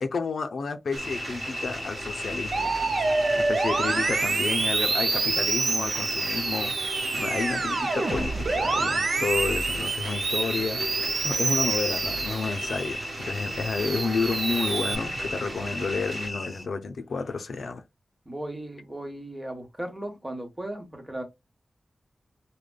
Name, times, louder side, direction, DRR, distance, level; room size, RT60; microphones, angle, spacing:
voice 1, 0.0-2.7 3.4-10.9 11.2-17.8, left 4 dB, 80° left, 0.5 m, -31 dB
sound 1, 0.9-16.3, right 2 dB, 85° right, 0.8 m, -39 dB
sound 2, 1.0-16.7, left 1 dB, 30° left, 1.2 m, -36 dB
Musical instrument, 2.5-12.9 13.4-15.0, right 4 dB, 70° right, 0.5 m, -27 dB
voice 2, 18.2-21.2, right 1 dB, 20° right, 1.2 m, -36 dB
4.9 x 2.2 x 2.3 m
wide cardioid pair, 90°, 0 cm